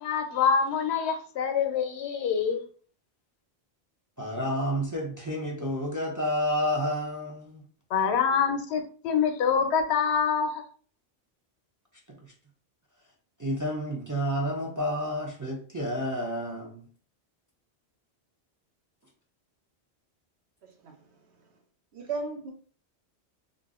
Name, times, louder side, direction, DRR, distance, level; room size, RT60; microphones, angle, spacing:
voice 1, 0.0-2.6 7.9-10.6, left 6 dB, 85° left, 0.9 m, -25 dB
voice 2, 4.2-7.6 12.1-12.3 13.4-16.8, equal, 30° right, 0.4 m, -30 dB
voice 3, 20.6-21.3 21.9-22.5, right 4 dB, 85° right, 1.0 m, -36 dB
2.5 x 2.1 x 3.5 m
omnidirectional pair, 1.1 m